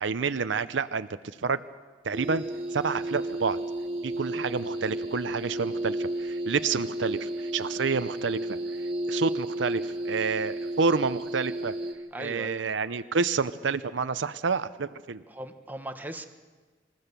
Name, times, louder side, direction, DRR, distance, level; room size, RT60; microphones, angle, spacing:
voice 1, 0.0-1.1 1.4-1.6 2.0-2.4 2.7-3.6 4.0-8.6 9.1-11.7 12.2-15.2, right 5 dB, 75° right, 12 dB, 0.6 m, -29 dB
sound 1, 2.1-11.9, right 1 dB, 30° right, 2.3 m, -33 dB
voice 2, 12.1-12.6 15.3-16.3, right 1 dB, 10° right, 6 dB, 1.2 m, -38 dB
25.5 x 14.5 x 6.8 m, 1.4 s
head